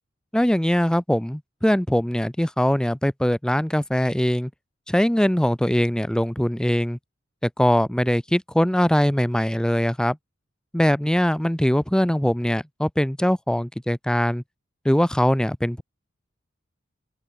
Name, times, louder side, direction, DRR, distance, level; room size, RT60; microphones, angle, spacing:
voice 1, 0.3-4.5 4.9-7.0 7.4-10.2 10.7-14.4 14.8-15.8, equal, 5° left, 0.5 m, -21 dB
open air
head